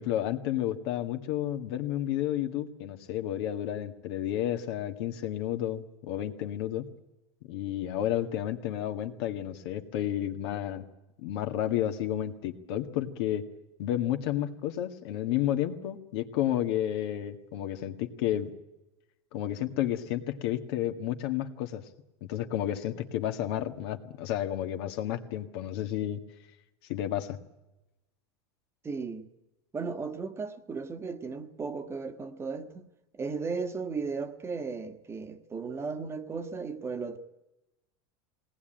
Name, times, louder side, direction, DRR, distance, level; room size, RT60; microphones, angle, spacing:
voice 1, 0.0-6.9 7.5-10.8 11.2-13.4 13.8-18.5 19.3-21.8 22.2-26.2 26.9-27.4, left 12 dB, 65° left, 1.9 m, -31 dB
voice 2, 28.8-29.3 29.7-32.9 33.1-37.2, right 4 dB, 20° right, 1.4 m, -35 dB
20.5 x 18.5 x 9.0 m
supercardioid pair, 135°, 14 cm